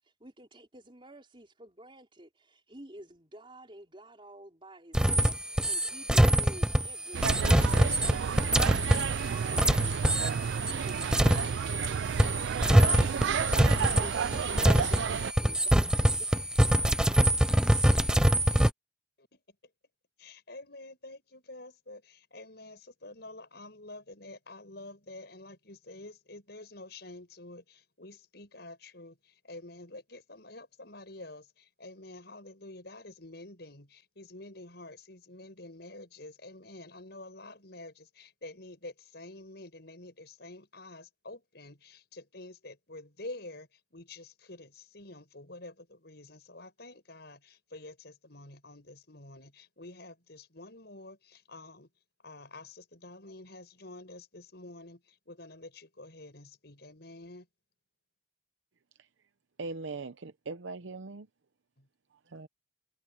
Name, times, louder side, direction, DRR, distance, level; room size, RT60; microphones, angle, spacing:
voice 1, 0.0-10.3 12.1-16.4, right 1 dB, 30° right, 4.2 m, -51 dB
sound 1, 4.9-11.9 12.2-18.7, right 1 dB, 5° right, 0.4 m, -25 dB
sound 2, 7.1-15.3, right 7 dB, 70° right, 0.4 m, -31 dB
voice 2, 20.2-51.9 52.2-57.5 61.8-61.9, left 2 dB, 60° left, 7.2 m, -48 dB
voice 3, 59.6-61.3 62.3-62.5, right 3 dB, 85° right, 0.7 m, -40 dB
head